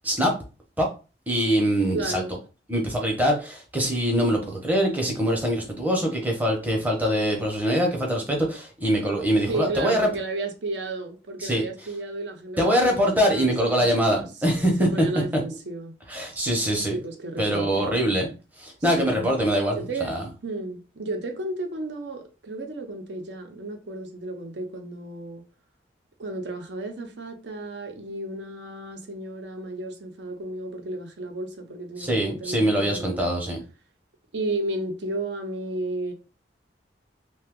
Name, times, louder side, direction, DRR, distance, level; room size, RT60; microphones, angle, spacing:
voice 1, 0.0-0.3 0.8-0.9 1.3-2.2 2.7-10.1 11.4-11.6 12.6-14.9 16.1-17.0 17.4-18.3 18.6-20.3 32.0-33.6, equal, 10° right, 0.7 m, -23 dB
voice 2, 1.9-2.4 9.5-14.3 14.8-15.9 16.9-18.0 19.0-19.3 19.7-20.1 20.4-25.4 26.2-33.4 34.3-36.1, right 2 dB, 70° right, 0.6 m, -33 dB
2.7 x 2.2 x 3.5 m
head